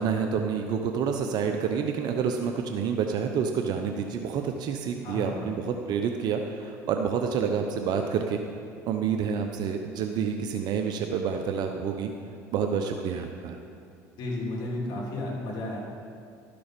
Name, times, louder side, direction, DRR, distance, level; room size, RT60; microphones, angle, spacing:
voice 1, 0.0-8.4 8.8-12.1 12.5-13.6, right 6 dB, 60° right, 5 dB, 0.7 m, -28 dB
voice 2, 5.0-5.5 14.2-15.8, left 2 dB, 60° left, -3 dB, 3.0 m, -33 dB
12.5 x 6.9 x 5.2 m, 2.3 s
supercardioid pair, 85°, 8 cm